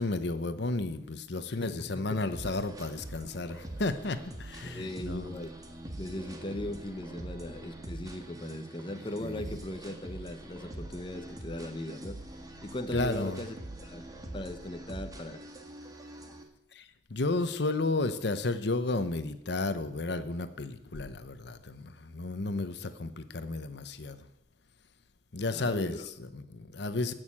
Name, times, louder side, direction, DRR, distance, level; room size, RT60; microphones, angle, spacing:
voice 1, 0.0-5.3 9.2-9.6 12.9-13.4 16.8-16.9 17.1-24.2 25.3-27.1, left 2 dB, 65° left, 11 dB, 0.9 m, -32 dB
voice 2, 2.1-2.5 4.6-5.5 6.0-12.2 12.6-14.0 14.3-15.4 25.5-26.1, left 1 dB, 25° left, 7 dB, 0.9 m, -39 dB
sound 1, 2.3-16.4, right 1 dB, 20° right, 1.6 m, -44 dB
16.5 x 6.5 x 8.7 m, 0.83 s
head